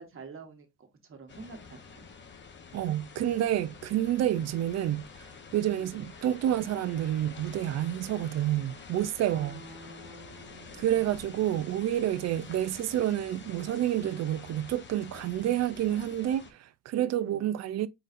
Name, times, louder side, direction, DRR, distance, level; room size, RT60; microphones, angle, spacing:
voice 1, 0.0-2.1 5.7-6.0 9.3-11.1 17.1-17.5, right 3 dB, 45° right, 1.4 m, -48 dB
sound 1, 1.3-16.5, left 5 dB, 40° left, 0.9 m, -48 dB
voice 2, 2.7-5.1 5.5-9.6 10.8-17.9, right 12 dB, 60° right, 0.4 m, -29 dB
4.1 x 3.9 x 2.5 m
cardioid pair, 90°, 30 cm